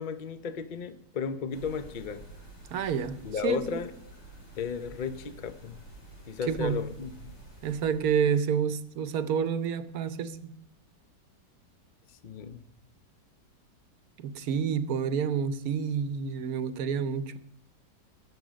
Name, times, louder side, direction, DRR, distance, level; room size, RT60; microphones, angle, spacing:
voice 1, 0.0-2.2 3.2-3.9 4.6-5.8 6.3-7.3 12.2-12.6, left 6 dB, 50° left, 0.5 m, -34 dB
sound 1, 1.5-8.1, right 2 dB, 90° left, 5.6 m, -49 dB
voice 2, 2.7-3.2 3.4-3.8 6.5-6.8 7.6-10.5 14.2-17.4, right 7 dB, 65° right, 1.2 m, -29 dB
20.5 x 7.7 x 5.1 m
omnidirectional pair, 1.9 m